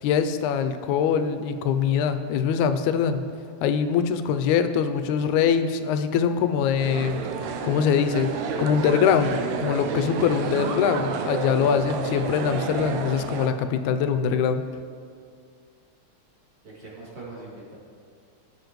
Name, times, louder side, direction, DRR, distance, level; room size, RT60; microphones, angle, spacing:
voice 1, 0.0-3.3 3.6-7.2 7.6-8.3 8.6-14.6, left 7 dB, 90° left, 9 dB, 2.0 m, -23 dB
sound 1, 6.8-13.5, right 5 dB, 80° right, 2.0 m, -30 dB
voice 2, 16.6-17.8, right 2 dB, 50° right, -6 dB, 3.5 m, -42 dB
17.0 x 7.2 x 3.1 m, 2.3 s
omnidirectional pair, 3.4 m